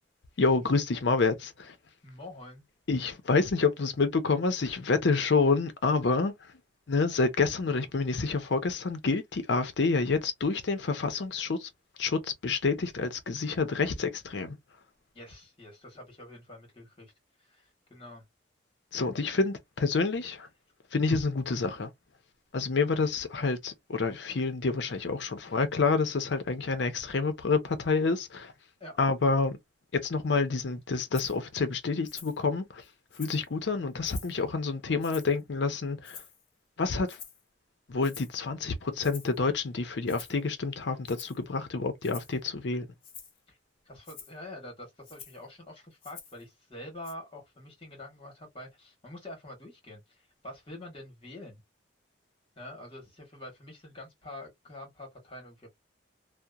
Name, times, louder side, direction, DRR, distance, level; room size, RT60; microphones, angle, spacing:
voice 1, 0.4-1.7 2.9-6.3 6.9-11.7 12.0-14.6 18.9-20.5 20.9-21.9 22.5-28.5 29.0-29.6 29.9-32.8 33.2-36.2 36.8-37.2 37.9-42.9, left 4 dB, 65° left, 0.6 m, -28 dB
voice 2, 2.0-2.6 15.1-17.1 17.4-18.2 25.5-25.6 28.8-29.0 43.5-43.6 43.8-50.0 50.4-51.6 52.6-55.7, left 1 dB, 30° left, 1.3 m, -46 dB
Rattle (instrument), 31.1-31.4 32.0-32.4 32.8-33.5 34.0-34.4 35.0-35.4 36.0-36.5 37.1-37.4 38.0-38.4 39.0-39.4 40.1-40.4 41.0-41.4 42.0-42.4 43.0-43.4 44.0-44.4 45.0-45.4 46.0-46.4 47.0-47.1, left 6 dB, 45° left, 0.9 m, -47 dB
2.8 x 2.0 x 2.3 m
head